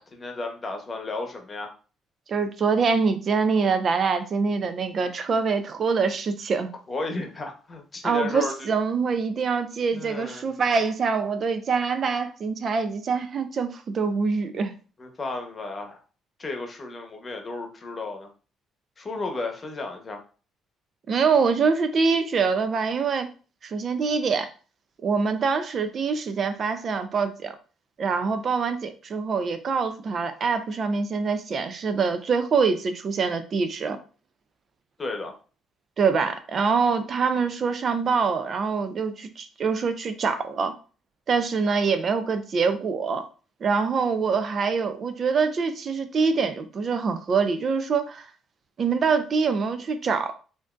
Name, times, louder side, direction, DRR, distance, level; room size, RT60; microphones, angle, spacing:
voice 1, 0.0-1.7 6.9-8.7 9.9-10.5 15.0-16.0 16.4-18.3 19.0-20.2 30.1-30.2 35.0-35.3, left 3 dB, 35° left, 3 dB, 0.9 m, -33 dB
voice 2, 2.3-6.7 8.0-14.7 21.1-23.3 23.6-24.5 25.0-27.5 28.0-34.0 36.0-40.7 41.3-43.2 43.6-48.3 48.8-50.3, right 5 dB, 50° right, 9 dB, 0.4 m, -24 dB
3.5 x 2.6 x 2.4 m, 0.37 s
supercardioid pair, 70°, 0 cm